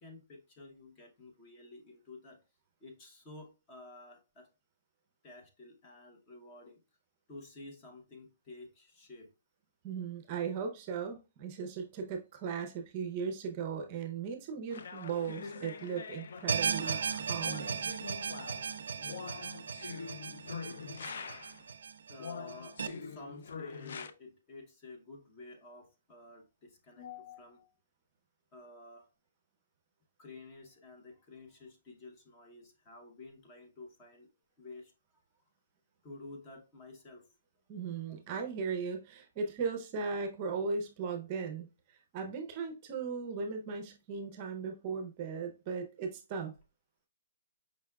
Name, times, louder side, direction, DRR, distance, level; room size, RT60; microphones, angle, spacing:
voice 1, 0.0-2.4 2.8-4.5 5.2-6.8 7.3-9.3 22.1-27.7 28.5-29.1 30.2-34.3 34.6-34.9 36.0-37.3, left 3 dB, 20° left, 0.7 m, -51 dB
voice 2, 9.8-17.9 37.7-46.5, right 5 dB, 25° right, 0.5 m, -37 dB
sound 1, 14.7-21.7 22.2-24.1, left 5 dB, 60° left, 0.4 m, -45 dB
sound 2, 16.5-22.9, right 6 dB, 75° right, 0.3 m, -36 dB
5.1 x 3.5 x 2.2 m
hypercardioid pair, 170°, 0 cm